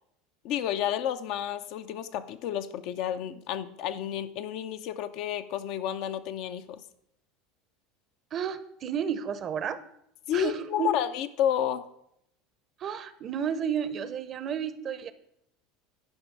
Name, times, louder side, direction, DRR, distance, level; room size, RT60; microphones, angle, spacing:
voice 1, 0.4-6.8 10.3-11.8, left 10 dB, 60° left, 10 dB, 0.6 m, -31 dB
voice 2, 8.3-9.8 10.3-10.9 12.8-15.1, right 8 dB, 40° right, 14 dB, 0.7 m, -32 dB
10.5 x 5.1 x 4.7 m, 0.74 s
hypercardioid pair, 85°, 0 cm